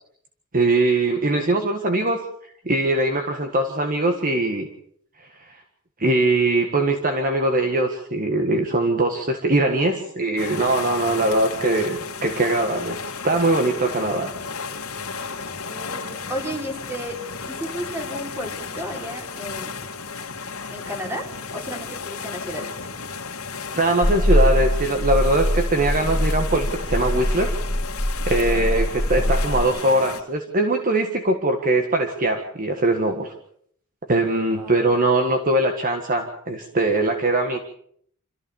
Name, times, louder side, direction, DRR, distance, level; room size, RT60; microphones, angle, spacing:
voice 1, 0.5-2.2 2.6-4.7 5.4-5.5 6.0-14.3 23.7-27.5 28.3-33.3 34.1-37.6, right 2 dB, 40° right, 5 dB, 1.7 m, -21 dB
sound 1, 10.4-30.2, left 5 dB, 90° left, 2.2 m, -34 dB
voice 2, 15.6-17.2 17.4-19.8 20.7-22.7 28.3-28.7 34.5-35.0, equal, 10° right, 1 dB, 4.4 m, -33 dB
sound 2, 24.0-29.6, equal, 35° left, 2.6 m, -22 dB
26.0 x 14.5 x 7.1 m, 0.64 s
head